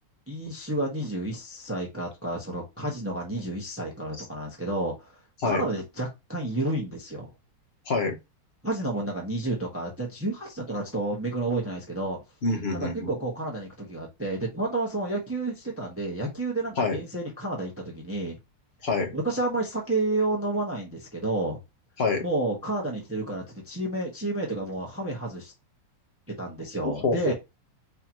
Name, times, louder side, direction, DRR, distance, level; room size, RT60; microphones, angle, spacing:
voice 1, 0.3-5.1 5.4-7.3 8.6-12.2 12.7-18.4 19.1-21.6 22.2-25.5 26.4-27.3, right 2 dB, 10° right, 0.7 m, -30 dB
voice 2, 12.4-13.1 16.8-17.0 18.8-19.1 22.0-22.2 26.8-27.3, left 3 dB, 45° left, 1.0 m, -26 dB
4.8 x 2.9 x 2.9 m
omnidirectional pair, 1.9 m